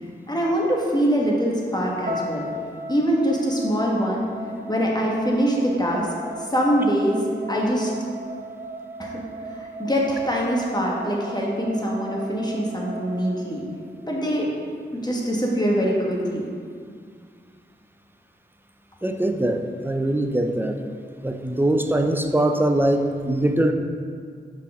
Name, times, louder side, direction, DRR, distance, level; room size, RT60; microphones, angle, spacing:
voice 1, 0.3-2.5 2.9-4.3 4.7-6.1 6.5-7.2 7.5-7.9 9.0-9.2 9.5-13.6 14.0-14.5 14.9-16.4, equal, 20° left, -3 dB, 1.3 m, -23 dB
sound 1, 2.1-14.2, right 1 dB, 70° right, 0.9 m, -37 dB
voice 2, 19.0-20.8 21.2-23.7, right 1 dB, 10° right, 5 dB, 0.5 m, -22 dB
5.6 x 4.1 x 4.8 m, 2.1 s
cardioid pair, 45°, 20 cm